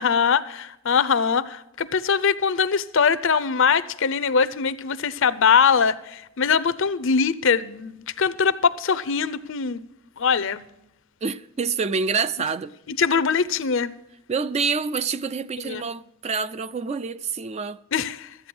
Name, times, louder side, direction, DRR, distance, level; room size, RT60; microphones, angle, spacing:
voice 1, 0.0-9.8 10.2-10.7 12.9-13.9 15.6-15.8 17.9-18.3, left 6 dB, 60° left, 0.6 m, -22 dB
voice 2, 11.2-12.7 14.3-17.8, right 5 dB, 30° right, 0.4 m, -27 dB
14.0 x 8.6 x 6.1 m
head